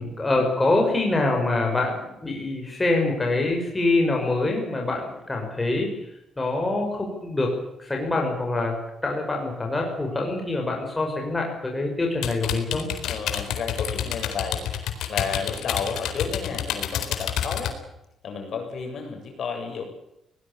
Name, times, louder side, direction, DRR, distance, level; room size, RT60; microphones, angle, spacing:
voice 1, 0.0-5.9 6.4-12.9, left 2 dB, 15° left, 0 dB, 5.8 m, -25 dB
sound 1, 12.2-17.7, left 10 dB, 85° left, 4.1 m, -29 dB
voice 2, 13.0-14.7 15.1-17.8 18.2-19.8, left 5 dB, 45° left, 4 dB, 7.7 m, -31 dB
22.0 x 19.0 x 8.4 m, 0.84 s
cardioid pair, 165°, 0 cm